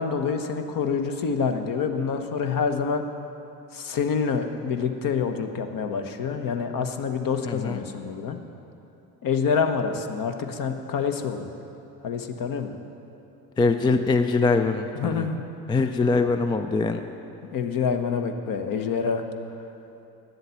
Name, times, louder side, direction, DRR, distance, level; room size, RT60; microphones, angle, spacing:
voice 1, 0.0-3.0 3.7-8.4 9.2-11.5 12.0-12.7 15.0-15.4 15.7-15.8 17.4-19.2, left 6 dB, 45° left, 6 dB, 1.1 m, -27 dB
voice 2, 7.5-7.8 13.6-15.3 15.7-17.0, left 3 dB, 10° left, 8 dB, 0.3 m, -23 dB
10.5 x 7.8 x 6.9 m, 2.8 s
hypercardioid pair, 60°, 45 cm